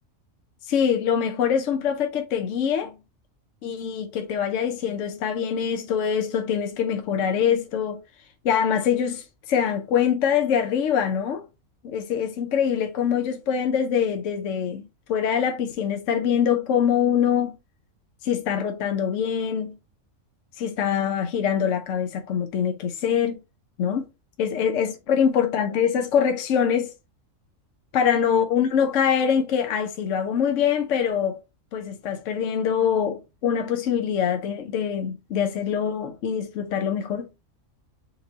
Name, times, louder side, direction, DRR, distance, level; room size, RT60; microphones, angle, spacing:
voice 1, 0.7-2.9 3.6-8.0 8.4-11.4 11.8-17.6 18.2-19.8 20.6-23.4 23.8-24.1 24.4-26.9 27.9-31.4 31.7-37.3, left 8 dB, 70° left, 1.0 m, -24 dB
4.5 x 2.7 x 3.8 m
omnidirectional pair, 1.4 m